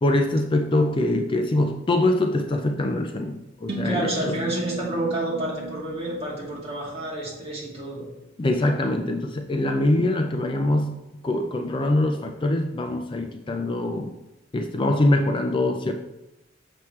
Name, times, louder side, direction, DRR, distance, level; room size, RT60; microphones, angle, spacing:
voice 1, 0.0-4.4 8.4-14.1 14.5-15.9, left 1 dB, 25° left, 4 dB, 0.4 m, -23 dB
sound 1, 3.7-7.5, right 2 dB, 60° right, 1.2 m, -36 dB
voice 2, 3.8-8.1, right 1 dB, 30° right, -5 dB, 2.5 m, -29 dB
7.1 x 6.0 x 3.2 m, 0.96 s
head